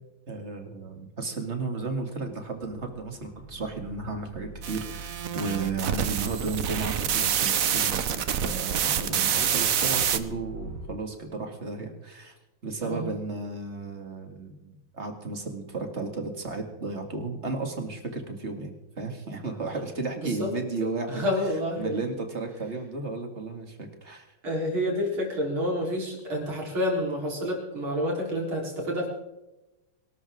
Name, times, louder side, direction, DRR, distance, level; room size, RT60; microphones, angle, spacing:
voice 1, 0.3-12.3 12.6-21.2 21.8-24.3, right 3 dB, 35° right, 4 dB, 2.4 m, -34 dB
sound 1, 2.3-10.9, right 2 dB, 75° left, 5.6 m, -45 dB
sound 2, 4.6-10.2, right 9 dB, 55° right, 1.1 m, -27 dB
voice 2, 21.1-22.0 24.4-29.1, left 1 dB, 90° right, -1 dB, 4.8 m, -29 dB
24.0 x 12.5 x 3.7 m, 0.98 s
omnidirectional pair, 2.2 m